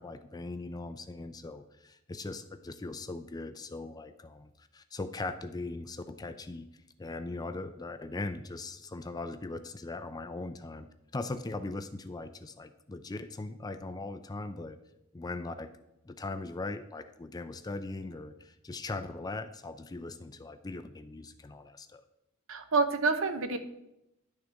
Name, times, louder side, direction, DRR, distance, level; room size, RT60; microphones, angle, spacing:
voice 1, 0.0-6.7 7.0-14.8 15.1-15.7 16.0-22.0, left 2 dB, 20° left, 10 dB, 0.4 m, -40 dB
voice 2, 22.5-23.6, right 4 dB, 65° right, 8 dB, 0.8 m, -27 dB
11.0 x 6.5 x 3.5 m, 0.88 s
head